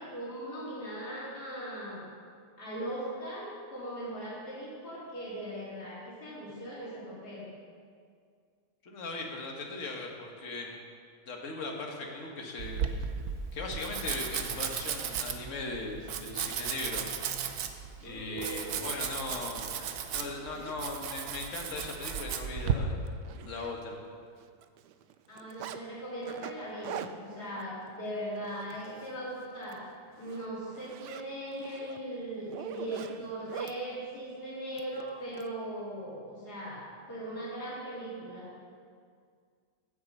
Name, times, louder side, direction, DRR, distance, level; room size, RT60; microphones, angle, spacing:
voice 1, 0.0-2.1 2.6-7.5 18.0-19.1 25.3-29.8 30.2-38.5, right 1 dB, 70° left, -8 dB, 3.6 m, -39 dB
voice 2, 8.8-10.8 11.3-12.8 13.5-17.0 18.0-19.7 20.1-23.0 23.4-24.0, left 3 dB, 50° left, 0 dB, 1.8 m, -38 dB
Domestic sounds home sounds, 12.6-22.7, right 8 dB, 70° right, 1.2 m, -35 dB
Zipper (clothing), 19.6-20.8 21.4-21.5 21.9-22.0 22.4-22.5 22.8-24.1 24.4-25.8 26.2-29.2 29.5-29.8 30.1-33.8 34.8-35.5, right 10 dB, 90° right, 1.2 m, -45 dB
15.5 x 7.5 x 5.5 m, 2.1 s
omnidirectional pair, 1.7 m